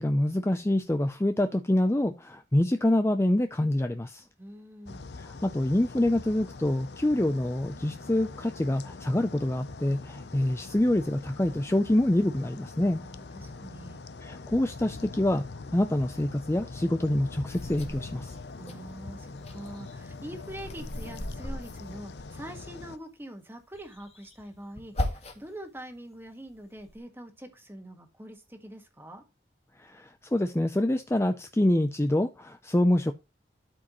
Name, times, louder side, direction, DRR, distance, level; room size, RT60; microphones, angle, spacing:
voice 1, 0.0-4.2 5.2-13.0 14.2-15.5 15.7-18.4 29.8-33.1, left 1 dB, 15° left, 0.5 m, -26 dB
voice 2, 4.4-5.1 13.0-14.1 18.5-29.2, right 1 dB, 15° right, 1.7 m, -44 dB
sound 1, 4.9-23.0, left 3 dB, 70° left, 0.7 m, -43 dB
sound 2, 17.5-18.8 19.2-22.7 23.7-25.6 26.1-27.0, left 1 dB, 35° left, 1.7 m, -38 dB
12.5 x 5.0 x 3.1 m
head